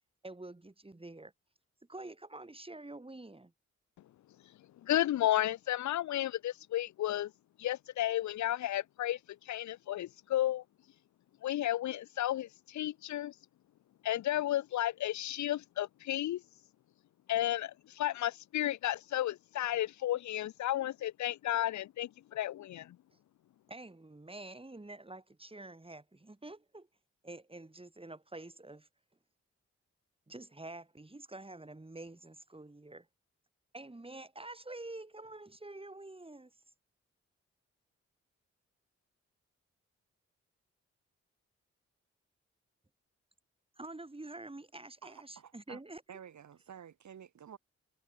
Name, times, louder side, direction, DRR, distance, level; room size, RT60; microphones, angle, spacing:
voice 1, 0.2-1.3 1.9-3.5 23.7-26.9 27.2-28.9 30.3-33.1 33.7-36.5 43.8-46.0, right 2 dB, 20° right, 3.5 m, -47 dB
voice 2, 4.8-7.3 7.6-9.2 9.5-10.6 11.4-13.3 14.0-16.4 17.3-23.0, left 13 dB, 75° left, 0.6 m, -33 dB
voice 3, 45.0-45.8 46.1-47.6, right 8 dB, 75° right, 5.4 m, -51 dB
cardioid pair, 55°, 29 cm